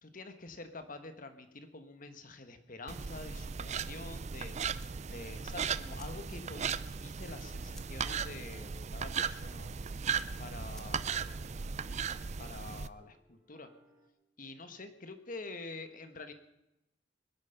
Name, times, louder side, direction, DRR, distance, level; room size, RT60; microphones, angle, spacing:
voice 1, 0.0-9.7 10.4-11.1 12.4-13.7 14.4-16.3, left 3 dB, 50° left, 8 dB, 1.5 m, -47 dB
sound 1, 2.9-12.9, right 6 dB, 40° right, 0.5 m, -37 dB
sound 2, 4.8-11.4, left 1 dB, 5° left, 1.4 m, -63 dB
sound 3, 9.7-14.1, equal, 15° right, 3.4 m, -67 dB
21.5 x 10.5 x 5.9 m, 0.92 s
head